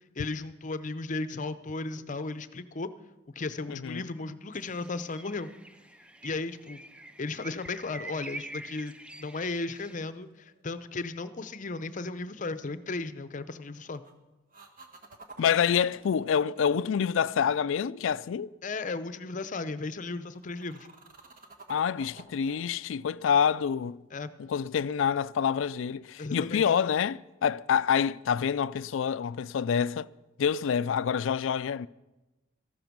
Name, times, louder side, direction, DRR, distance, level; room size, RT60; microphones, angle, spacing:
voice 1, 0.2-2.9 3.4-5.5 6.2-6.8 7.2-8.9 9.2-14.0 18.6-20.9 24.1-24.3 26.2-26.6, left 3 dB, 40° left, 0.6 m, -35 dB
voice 2, 3.7-4.0 15.4-18.5 21.7-24.0 24.4-30.1 30.4-31.9, left 7 dB, 85° left, 0.4 m, -27 dB
sound 1, 4.5-10.0, right 2 dB, 5° right, 0.4 m, -46 dB
sound 2, 9.7-10.9 13.6-14.1 14.5-17.8 20.0-24.4 28.2-28.3, right 3 dB, 45° right, 1.4 m, -52 dB
13.5 x 12.0 x 6.0 m
head